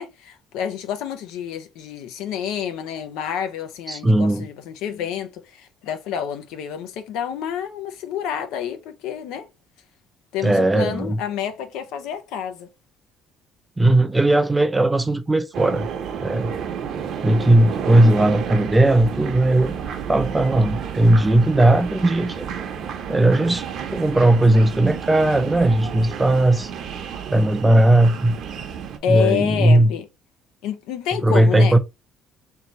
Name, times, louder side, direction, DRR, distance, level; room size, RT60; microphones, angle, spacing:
voice 1, 0.0-9.5 10.3-12.7 29.0-30.1 30.6-31.8, left 8 dB, 85° left, 0.7 m, -28 dB
voice 2, 3.9-4.5 10.4-11.2 13.8-15.9 16.2-16.5 17.2-19.8 20.1-22.5 23.1-23.6 23.9-26.7 27.3-28.4 29.1-29.9 31.2-31.8, right 1 dB, 10° right, 0.4 m, -17 dB
sound 1, 15.5-29.0, right 7 dB, 55° right, 0.8 m, -31 dB
3.4 x 2.9 x 3.9 m
cardioid pair, 135°, 0 cm